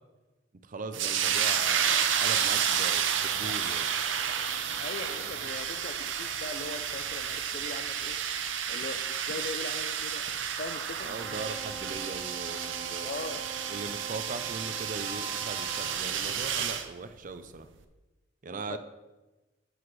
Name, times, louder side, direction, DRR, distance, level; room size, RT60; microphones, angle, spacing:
voice 1, 0.6-3.9 11.0-13.1 13.7-17.7 18.4-18.8, right 3 dB, 45° right, 10 dB, 0.5 m, -40 dB
sound 1, 0.9-16.9, right 8 dB, 80° right, 0.7 m, -31 dB
voice 2, 4.8-8.2 8.7-10.2 10.6-11.1 13.0-13.4 18.5-18.8, left 3 dB, 50° left, 10 dB, 0.6 m, -40 dB
Wind instrument woodwind instrument, 11.1-16.2, right 4 dB, 10° right, 1.5 m, -43 dB
10.5 x 8.1 x 3.2 m, 1.1 s
head